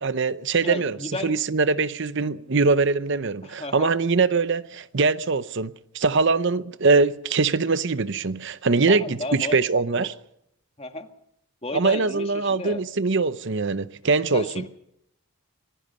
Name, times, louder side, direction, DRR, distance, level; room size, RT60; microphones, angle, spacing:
voice 1, 0.0-1.0 1.2-10.1 11.7-14.5, right 4 dB, 55° right, 0.7 m, -22 dB
voice 2, 0.6-1.3 3.4-3.9 8.9-9.6 9.9-10.1 10.8-11.1 11.6-12.8 14.3-14.7, left 2 dB, 25° left, 1.8 m, -33 dB
26.0 x 20.0 x 5.5 m
head